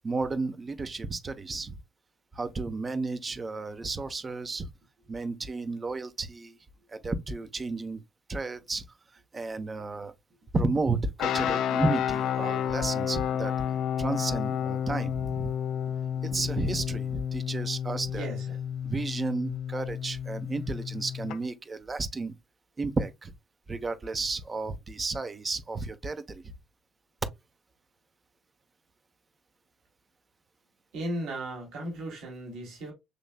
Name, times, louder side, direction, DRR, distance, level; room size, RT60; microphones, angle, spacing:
voice 1, 0.0-1.8 2.3-4.7 5.1-6.6 6.9-8.0 8.3-8.8 9.3-10.1 10.5-13.5 14.0-15.5 16.2-18.3 18.8-22.3 22.8-23.3 23.7-26.5, right 3 dB, 30° right, 0.9 m, -32 dB
sound 1, 11.2-21.4, left 9 dB, 65° left, 0.5 m, -31 dB
voice 2, 18.1-18.5 30.9-32.9, right 1 dB, 70° right, 2.6 m, -36 dB
6.8 x 3.2 x 2.2 m
hypercardioid pair, 60°, 0 cm